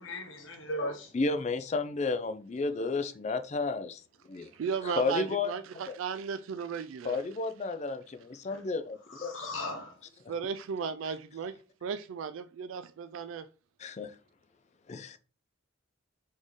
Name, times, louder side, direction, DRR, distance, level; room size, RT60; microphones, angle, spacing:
voice 1, 0.0-1.1 8.5-8.6 9.1-10.0, left 1 dB, 75° left, 1.1 m, -37 dB
voice 2, 1.1-4.0 4.3-4.5 4.9-5.5 5.9-6.0 7.0-9.5 13.8-14.2 14.9-15.2, left 3 dB, 35° left, 0.4 m, -32 dB
voice 3, 4.3-7.2 10.3-11.5 11.8-13.5, right 6 dB, 80° right, 0.3 m, -35 dB
4.3 x 3.6 x 3.1 m
head